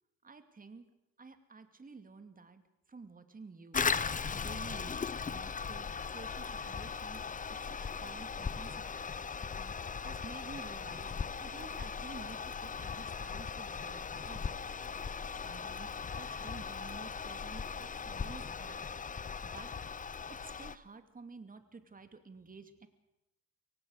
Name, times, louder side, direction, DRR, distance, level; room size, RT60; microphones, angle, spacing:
voice 1, 0.2-2.6 2.9-3.8 4.3-4.9 5.3-8.9 9.5-11.1 11.4-14.6 15.4-18.8 19.4-19.7 20.3-22.9, right 4 dB, 30° right, 9 dB, 2.5 m, -51 dB
Toilet flush, 3.7-20.8, left 5 dB, 25° left, 0.7 m, -38 dB
24.0 x 18.0 x 6.6 m, 0.88 s
cardioid pair, 90°, 30 cm